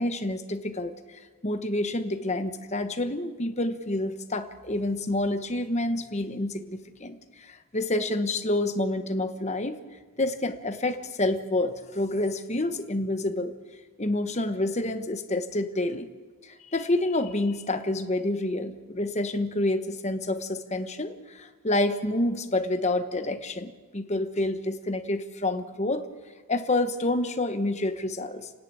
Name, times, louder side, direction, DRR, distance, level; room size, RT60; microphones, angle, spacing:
voice 1, 0.0-9.8 10.2-13.5 14.0-16.1 16.4-26.1 26.5-28.5, left 2 dB, 30° left, 8 dB, 1.1 m, -28 dB
29.5 x 10.5 x 8.9 m, 1.4 s
head